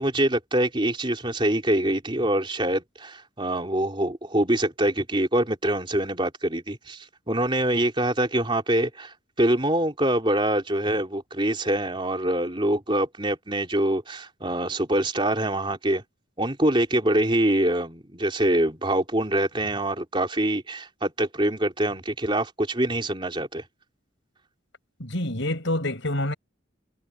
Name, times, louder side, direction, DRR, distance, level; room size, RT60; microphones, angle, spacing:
voice 1, 0.0-16.0 16.4-23.6, right 1 dB, 25° right, 3.3 m, -25 dB
voice 2, 25.0-26.3, left 1 dB, 65° left, 6.1 m, -27 dB
head